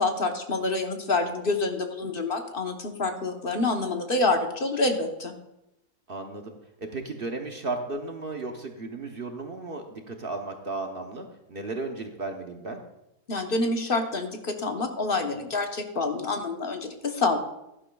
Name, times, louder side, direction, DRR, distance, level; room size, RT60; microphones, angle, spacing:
voice 1, 0.0-5.3 13.3-17.4, left 3 dB, 40° left, 4 dB, 1.0 m, -27 dB
voice 2, 6.1-12.8, right 3 dB, 45° right, 3 dB, 0.9 m, -35 dB
15.0 x 11.5 x 2.3 m, 0.90 s
omnidirectional pair, 1.7 m